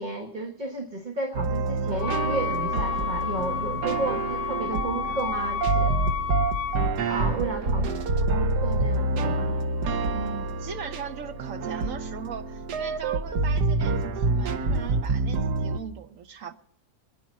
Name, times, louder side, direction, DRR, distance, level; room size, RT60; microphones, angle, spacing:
voice 1, 0.0-5.9 7.1-7.8 8.2-9.6, right 2 dB, 30° right, 1.4 m, -32 dB
sound 1, 1.3-15.8, right 3 dB, 70° right, 1.5 m, -27 dB
Wind instrument woodwind instrument, 2.0-6.9, left 8 dB, 65° left, 1.3 m, -31 dB
voice 2, 7.6-7.9 10.1-16.5, right 7 dB, 55° right, 1.3 m, -39 dB
25.0 x 10.0 x 4.2 m
omnidirectional pair, 1.8 m